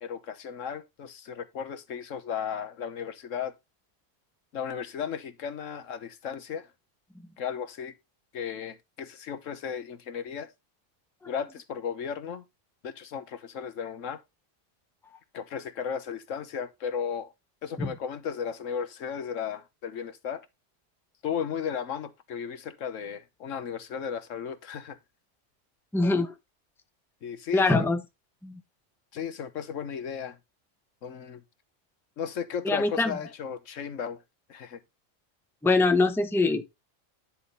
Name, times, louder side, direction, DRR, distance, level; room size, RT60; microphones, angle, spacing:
voice 1, 0.0-3.5 4.5-6.7 7.4-7.9 8.3-10.5 11.2-12.4 12.8-14.2 15.3-17.3 17.6-20.5 21.2-25.0 27.2-27.9 29.1-30.4 31.0-31.4 32.2-34.2 34.5-34.8, left 7 dB, 85° left, 1.4 m, -35 dB
voice 2, 25.9-26.3 27.5-28.0 28.4-28.6 32.6-33.1 35.6-36.6, left 3 dB, ahead, 0.7 m, -23 dB
10.5 x 3.5 x 5.5 m
omnidirectional pair, 1.3 m